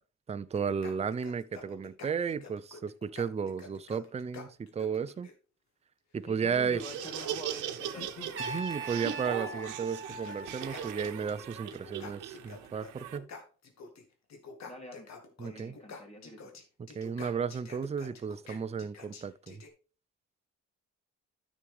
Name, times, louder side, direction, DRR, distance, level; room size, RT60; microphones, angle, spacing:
voice 1, 0.3-5.3 6.1-6.8 8.4-13.3 15.4-15.8 16.8-19.6, right 6 dB, 20° right, 0.5 m, -34 dB
sound 1, 0.5-5.3 6.6-8.4 9.5-9.6 10.0-11.5 11.7-14.0 14.3-19.7, left 4 dB, 65° left, 2.0 m, -48 dB
voice 2, 6.2-8.1 14.6-15.1 15.4-16.5, left 1 dB, 20° left, 3.2 m, -45 dB
Laughter, 6.6-13.2, right 10 dB, 80° right, 1.0 m, -40 dB
Trumpet, 8.3-11.3, right 3 dB, 40° right, 2.7 m, -41 dB
10.0 x 6.3 x 3.5 m
cardioid pair, 90°, 30 cm